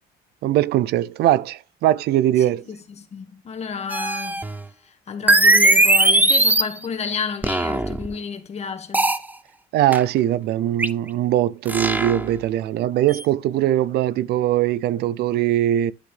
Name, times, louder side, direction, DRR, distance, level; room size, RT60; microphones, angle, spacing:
voice 1, 0.4-2.7 9.7-15.9, right 12 dB, 75° right, 0.5 m, -21 dB
voice 2, 2.7-4.4 5.1-9.1, left 6 dB, 40° left, 1.8 m, -31 dB
sound 1, 3.9-4.6 5.3-6.8 7.4-8.1 8.9-9.2 9.9-10.0 10.8-10.9 11.7-12.3 13.1-13.2, right 2 dB, 10° right, 0.6 m, -18 dB
11.5 x 5.8 x 3.4 m
cardioid pair, 110°, 17 cm